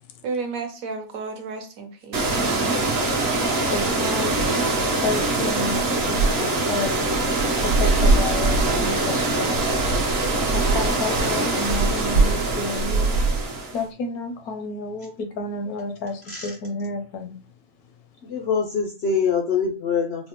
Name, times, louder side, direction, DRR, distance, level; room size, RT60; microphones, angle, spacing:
voice 1, 0.2-2.9, right 4 dB, 70° right, 1.1 m, -32 dB
sound 1, 2.1-13.8, right 2 dB, 50° right, 0.8 m, -22 dB
voice 2, 3.7-4.3 5.0-6.3 6.7-6.9 7.6-9.7 10.5-13.2 13.7-17.4, left 3 dB, 85° left, 1.1 m, -30 dB
voice 3, 16.2-16.6 18.2-20.3, left 6 dB, 65° left, 0.6 m, -24 dB
4.1 x 2.1 x 2.9 m
omnidirectional pair, 1.6 m